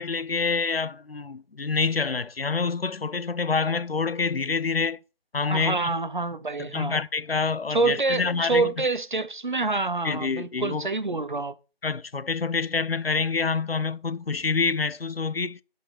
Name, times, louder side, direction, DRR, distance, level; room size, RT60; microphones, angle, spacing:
voice 1, 0.0-5.0 5.3-5.8 6.6-8.7 10.0-10.9 11.8-15.6, left 4 dB, 70° left, 0.9 m, -27 dB
voice 2, 5.5-7.0 7.7-11.6, right 3 dB, 50° right, 0.9 m, -27 dB
11.5 x 5.2 x 4.4 m
figure-of-eight pair, 175°, 30 cm